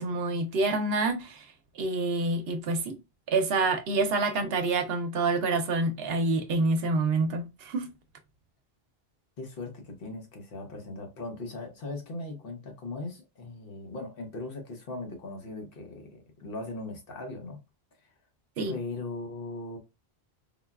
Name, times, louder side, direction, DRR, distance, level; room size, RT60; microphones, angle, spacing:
voice 1, 0.0-1.5 1.8-3.0 3.3-7.9 18.6-18.7, right 3 dB, 75° right, 0.8 m, -27 dB
voice 2, 9.4-17.6 18.7-19.8, left 2 dB, 65° left, 1.0 m, -39 dB
3.8 x 2.2 x 2.2 m
omnidirectional pair, 1.0 m